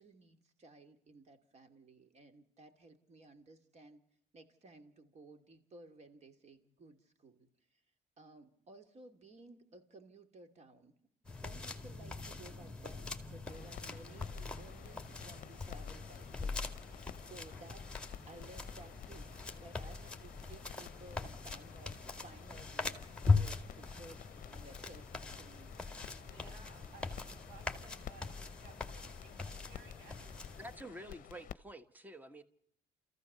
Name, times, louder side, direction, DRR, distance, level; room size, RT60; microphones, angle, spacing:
voice 1, 0.0-4.0 4.3-7.8 8.2-10.9 11.3-17.9 18.3-22.0 22.2-23.0 23.4-24.3 24.5-26.2, right 2 dB, 40° right, 9 dB, 2.7 m, -57 dB
sound 1, 11.2-30.8, left 4 dB, 5° left, 2.1 m, -40 dB
sound 2, 13.5-31.5, left 11 dB, 55° left, 0.8 m, -53 dB
voice 2, 26.2-30.3, right 4 dB, 70° right, 2 dB, 7.0 m, -59 dB
voice 3, 30.6-32.4, right 1 dB, 10° right, 11 dB, 1.5 m, -49 dB
28.5 x 15.0 x 6.9 m, 0.73 s
cardioid pair, 110°, 17 cm